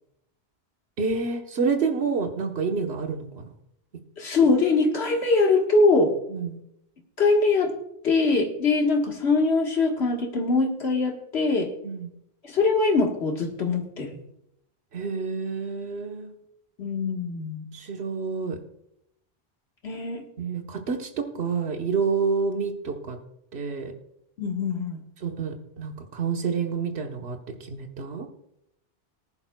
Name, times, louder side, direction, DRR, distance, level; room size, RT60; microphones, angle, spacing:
voice 1, 1.0-3.5 6.3-6.6 11.8-12.1 14.9-16.3 17.7-18.6 20.4-23.2 23.5-23.9 25.2-28.3, right 5 dB, 75° right, 4 dB, 1.4 m, -28 dB
voice 2, 4.2-6.1 7.2-7.7 8.0-11.7 12.4-14.2 16.8-17.6 19.8-20.2 24.4-25.0, left 3 dB, 90° left, 1 dB, 1.8 m, -22 dB
19.0 x 10.5 x 2.3 m, 0.78 s
omnidirectional pair, 1.1 m